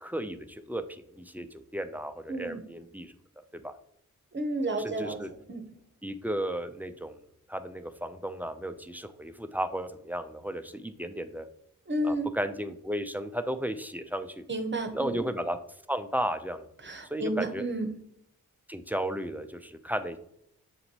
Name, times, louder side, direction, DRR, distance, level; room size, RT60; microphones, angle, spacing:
voice 1, 0.0-3.1 3.5-3.7 4.8-5.3 6.0-7.2 7.5-11.5 12.0-14.4 14.9-15.6 15.9-16.7 17.1-17.6 18.7-20.2, equal, 5° right, 8 dB, 0.4 m, -34 dB
voice 2, 2.3-2.6 4.3-5.2 5.5-5.7 11.9-12.3 14.5-15.3 16.8-17.9, right 1 dB, 30° right, 6 dB, 0.9 m, -31 dB
6.9 x 2.6 x 2.9 m, 0.74 s
cardioid pair, 45°, 35 cm